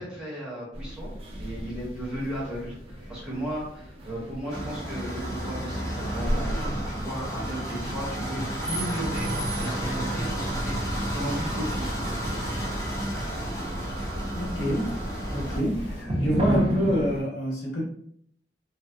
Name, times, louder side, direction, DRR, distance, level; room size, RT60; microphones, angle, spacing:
voice 1, 0.0-11.9, equal, 5° right, -8 dB, 1.1 m, -35 dB
sound 1, 0.7-17.2, equal, 30° right, 0.4 m, -35 dB
sound 2, 4.5-15.6, right 1 dB, 15° left, 0.5 m, -31 dB
sound 3, 9.5-16.0, equal, 45° left, 1.0 m, -39 dB
voice 2, 14.3-14.9 15.3-17.8, equal, 75° left, -4 dB, 0.9 m, -27 dB
2.6 x 2.1 x 2.2 m, 0.67 s
head